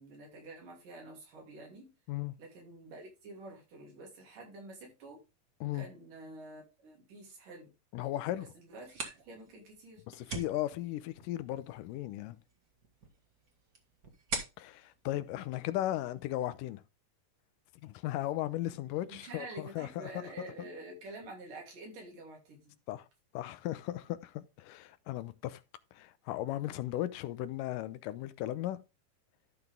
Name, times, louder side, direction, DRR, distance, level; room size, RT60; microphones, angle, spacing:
voice 1, 0.0-1.9 2.4-5.2 5.7-7.7 8.5-10.0 19.1-22.7, right 2 dB, 80° right, 4.8 m, -48 dB
voice 2, 7.9-8.5 10.1-12.4 14.6-16.8 17.8-20.1 22.9-23.1 23.3-25.6 25.9-28.8, left 14 dB, 90° left, 2.3 m, -36 dB
sound 1, 8.7-16.2, right 3 dB, 35° right, 1.7 m, -45 dB
12.5 x 6.0 x 3.5 m
omnidirectional pair, 3.7 m